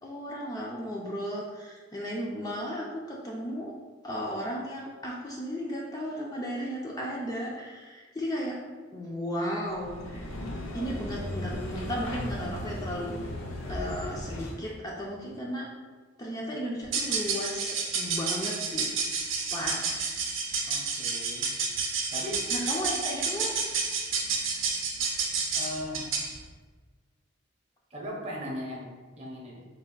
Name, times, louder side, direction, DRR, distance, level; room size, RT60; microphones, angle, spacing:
voice 1, 0.0-3.7 4.0-8.6 8.9-10.3 10.7-13.1 13.7-15.7 16.2-18.9 19.5-20.1 22.5-23.5, equal, 20° left, -3 dB, 0.4 m, -35 dB
sound 1, 9.7-14.7, left 1 dB, 75° left, 0.6 m, -36 dB
sound 2, 16.8-26.4, right 5 dB, 70° right, 0.6 m, -30 dB
voice 2, 20.7-21.5 22.1-22.4 25.5-26.0 27.9-29.7, left 1 dB, 30° right, -3 dB, 0.7 m, -38 dB
3.4 x 2.4 x 3.7 m, 1.4 s
head